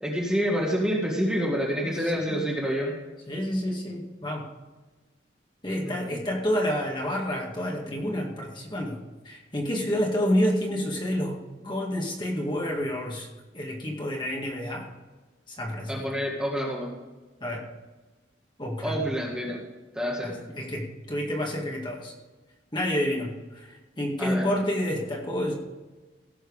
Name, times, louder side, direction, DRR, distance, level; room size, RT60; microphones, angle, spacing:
voice 1, 0.0-3.0 5.8-6.2 15.9-16.9 18.8-19.6 19.9-20.5 24.2-24.5, equal, 5° right, -3 dB, 1.8 m, -28 dB
voice 2, 1.8-2.5 3.3-4.5 5.6-9.0 9.2-13.3 13.5-14.9 15.5-16.0 17.4-17.6 18.6-19.0 20.2-22.1 22.7-25.5, equal, 25° left, -1 dB, 2.0 m, -29 dB
17.0 x 6.5 x 5.0 m, 1.2 s
head